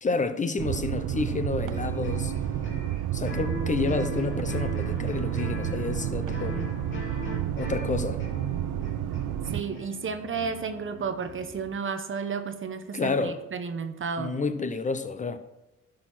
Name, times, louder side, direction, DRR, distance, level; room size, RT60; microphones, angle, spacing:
voice 1, 0.0-2.3 3.1-6.6 7.6-8.2 12.9-13.4 14.2-15.4, left 4 dB, 25° left, 0.8 m, -29 dB
sound 1, 0.6-9.6, right 12 dB, 80° right, 0.6 m, -30 dB
sound 2, 1.6-11.7, left 3 dB, 40° left, 2.6 m, -40 dB
voice 2, 9.5-14.3, right 5 dB, 45° right, 0.9 m, -32 dB
11.5 x 6.4 x 4.3 m
cardioid pair, 90°, 30 cm